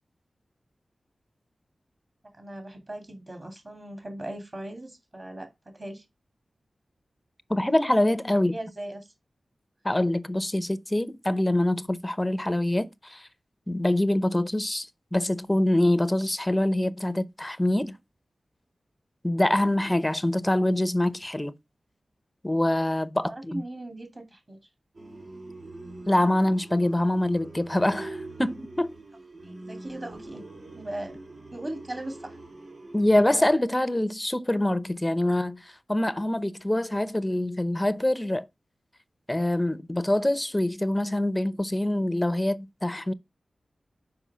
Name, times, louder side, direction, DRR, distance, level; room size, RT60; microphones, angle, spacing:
voice 1, 2.4-6.0 8.3-9.1 23.3-24.6 29.4-30.4 30.7-31.1 31.5-32.4, right 1 dB, 35° right, 2.6 m, -38 dB
voice 2, 7.5-8.5 9.8-13.3 13.7-17.9 19.2-21.5 22.4-23.6 26.1-28.9 32.9-38.5 39.3-43.1, left 1 dB, 15° left, 0.6 m, -25 dB
sound 1, 24.9-33.5, right 2 dB, 65° right, 3.1 m, -44 dB
6.2 x 4.9 x 5.5 m
wide cardioid pair, 85°, 0 cm